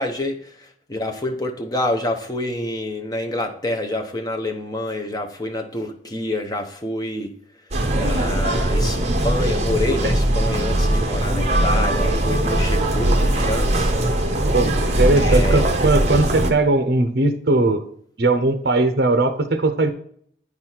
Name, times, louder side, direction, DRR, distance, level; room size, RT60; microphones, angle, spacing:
voice 1, 0.0-7.3 7.9-9.0 9.2-14.1 15.1-15.7, left 1 dB, 20° left, 0.8 m, -27 dB
sound 1, 7.7-16.5, right 1 dB, 35° right, 0.9 m, -20 dB
voice 2, 14.5-17.8 18.2-19.9, right 2 dB, 55° right, 0.7 m, -19 dB
9.4 x 4.1 x 4.4 m
head